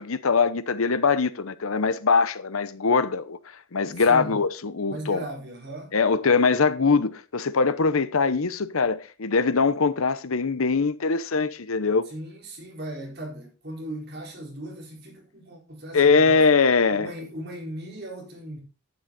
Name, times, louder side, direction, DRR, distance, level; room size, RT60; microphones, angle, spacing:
voice 1, 0.0-3.4 3.7-5.2 5.9-12.1 15.9-17.1, left 4 dB, 75° left, 0.8 m, -22 dB
voice 2, 4.0-4.4 4.9-5.9 12.1-16.4 16.9-18.6, right 1 dB, 45° right, 4.7 m, -37 dB
11.0 x 9.4 x 4.1 m
head